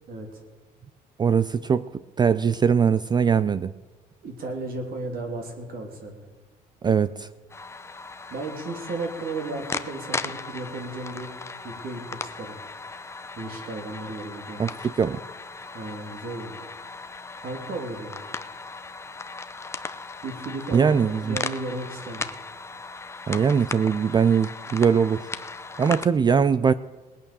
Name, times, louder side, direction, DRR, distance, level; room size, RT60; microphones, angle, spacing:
voice 1, 0.1-0.4 4.2-6.2 8.3-11.3 11.6-12.6 13.4-14.6 15.7-16.6 17.4-18.2 20.2-20.9 21.2-22.3, right 2 dB, 60° right, 3 dB, 3.1 m, -34 dB
voice 2, 1.2-1.9 2.2-3.7 6.8-7.3 14.6-15.2 20.7-21.4 23.3-25.3 25.8-26.7, right 6 dB, 25° right, 15 dB, 0.4 m, -21 dB
sound 1, 7.5-26.0, left 3 dB, 15° left, 0.7 m, -37 dB
19.0 x 8.9 x 6.9 m, 1.3 s
cardioid pair, 110°, 17 cm